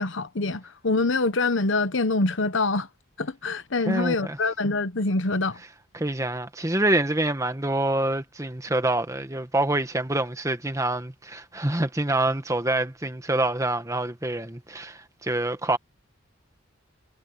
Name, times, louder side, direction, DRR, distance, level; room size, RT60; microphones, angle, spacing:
voice 1, 0.0-2.9 3.2-5.6, left 3 dB, 65° left, 1.0 m, -25 dB
voice 2, 3.9-4.4 5.9-15.8, right 2 dB, 15° right, 1.5 m, -26 dB
head